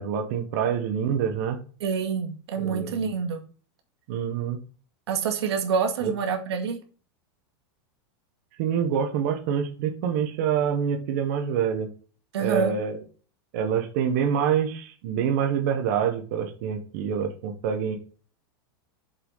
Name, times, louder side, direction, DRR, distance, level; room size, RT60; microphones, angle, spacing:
voice 1, 0.0-1.6 2.6-3.1 4.1-4.6 6.0-6.1 8.6-11.9 12.4-13.0 13.5-18.0, right 8 dB, 40° right, 5 dB, 1.3 m, -26 dB
voice 2, 1.8-3.4 5.1-6.8 12.3-12.7, right 6 dB, 90° right, 4 dB, 2.2 m, -27 dB
7.0 x 5.9 x 5.6 m, 0.38 s
supercardioid pair, 180°, 13 cm